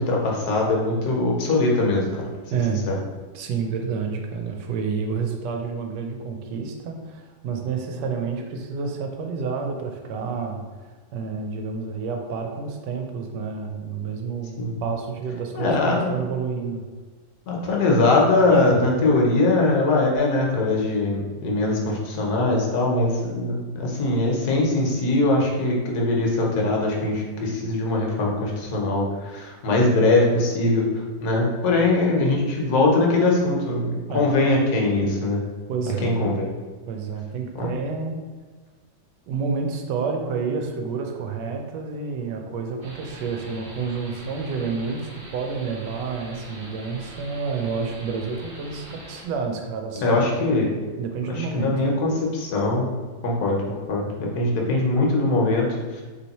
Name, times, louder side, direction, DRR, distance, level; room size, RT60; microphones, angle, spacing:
voice 1, 0.0-2.2 2.9-3.0 14.6-14.8 15.5-16.2 17.5-35.4 36.0-36.5 37.6-37.8 50.0-50.7 51.3-52.9 53.2-56.0, left 2 dB, 65° left, -1 dB, 1.2 m, -22 dB
voice 2, 2.5-2.8 3.3-16.9 18.5-18.8 34.1-34.3 35.7-36.1 36.9-38.2 39.3-50.6 51.0-52.0, right 5 dB, 80° right, 3 dB, 1.2 m, -29 dB
sound 1, 42.8-49.2, right 1 dB, 60° right, 0.5 m, -43 dB
3.2 x 2.9 x 4.1 m, 1.4 s
omnidirectional pair, 1.9 m